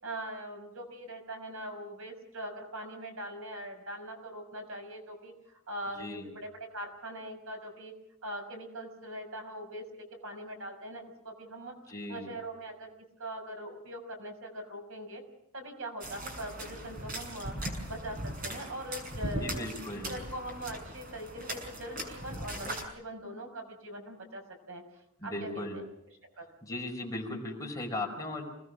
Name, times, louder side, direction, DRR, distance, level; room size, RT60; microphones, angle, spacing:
voice 1, 0.0-5.3 5.7-7.9 8.2-11.7 12.1-15.2 15.5-17.5 17.9-18.2 18.4-19.6 20.1-24.4 24.7-24.8 25.2-25.6 26.4-26.5, right 1 dB, 70° right, 3 dB, 6.2 m, -41 dB
voice 2, 6.0-6.3 11.9-12.3 19.4-20.2 25.2-25.8 26.6-28.4, left 2 dB, 15° left, 0 dB, 5.2 m, -37 dB
sound 1, 16.0-22.8, right 1 dB, 40° right, 6.5 m, -39 dB
28.5 x 20.0 x 6.4 m, 0.80 s
head